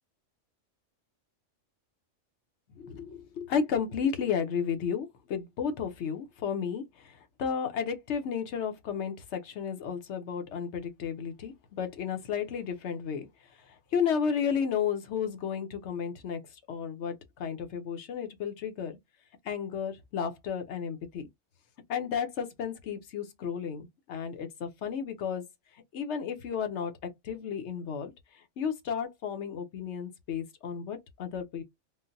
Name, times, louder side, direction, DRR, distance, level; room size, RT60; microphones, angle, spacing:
voice 1, 2.7-13.3 13.7-18.9 19.4-21.3 21.9-25.4 25.9-31.6, left 7 dB, 70° left, 1.0 m, -33 dB
3.7 x 2.1 x 2.6 m
omnidirectional pair, 1.3 m